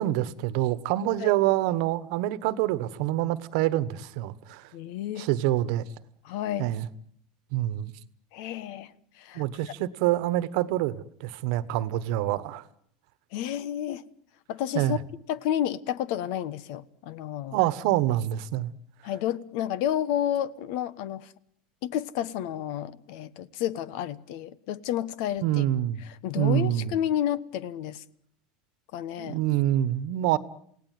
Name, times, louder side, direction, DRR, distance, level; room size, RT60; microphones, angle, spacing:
voice 1, 0.0-4.7 5.2-5.8 6.6-6.9 7.5-7.9 9.3-12.6 14.7-15.0 17.5-18.7 25.4-26.0 26.4-26.9 29.2-30.4, right 14 dB, 65° right, 1.3 m, -26 dB
voice 2, 4.7-5.3 6.2-6.7 8.3-9.4 13.3-14.0 14.5-15.0 15.3-17.6 19.0-21.3 21.8-25.6 26.0-28.0 28.9-29.4, left 11 dB, 60° left, 1.2 m, -31 dB
28.5 x 17.5 x 9.4 m
supercardioid pair, 150°, 3 cm